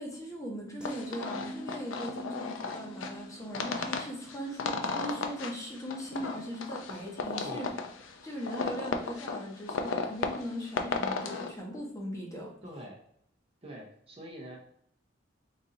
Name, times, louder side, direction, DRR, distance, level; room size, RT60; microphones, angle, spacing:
voice 1, 0.0-7.7 8.2-12.5, equal, 15° left, -1 dB, 1.0 m, -39 dB
sound 1, 0.8-11.5, left 4 dB, 90° left, 0.5 m, -35 dB
sound 2, 0.8-7.1 7.4-7.7, equal, 5° right, 0.5 m, -48 dB
voice 2, 7.4-7.8 12.6-13.0 13.6-14.6, equal, 30° right, -1 dB, 0.8 m, -44 dB
4.1 x 2.7 x 3.8 m, 0.70 s
head